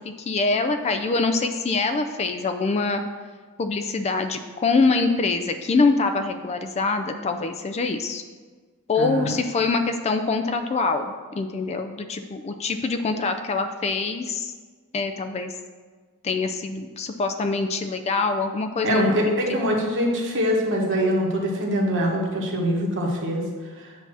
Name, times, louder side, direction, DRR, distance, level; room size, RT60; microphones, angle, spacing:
voice 1, 0.0-3.0 3.6-8.2 8.9-14.5 14.9-15.5 16.2-19.4, left 3 dB, 30° left, 8 dB, 0.3 m, -24 dB
voice 2, 9.0-9.3 18.8-23.4, equal, 55° right, -1 dB, 1.1 m, -23 dB
7.9 x 2.7 x 6.0 m, 1.5 s
head